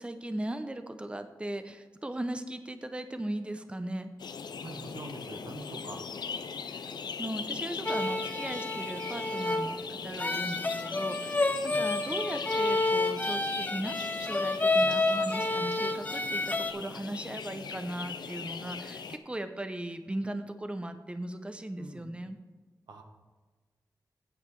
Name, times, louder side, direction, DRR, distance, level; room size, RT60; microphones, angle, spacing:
voice 1, 0.0-4.1 6.7-22.4, right 1 dB, 15° right, 8 dB, 0.7 m, -38 dB
sound 1, 4.2-19.2, left 5 dB, 80° left, 0.5 m, -40 dB
voice 2, 4.6-6.0 11.7-11.8 14.8-15.0 21.8-22.1 22.9-23.0, right 2 dB, 85° right, 3 dB, 1.2 m, -44 dB
sound 2, 7.9-16.7, left 2 dB, 25° left, 0.5 m, -29 dB
9.0 x 7.3 x 4.6 m, 1.3 s
cardioid pair, 55°, 7 cm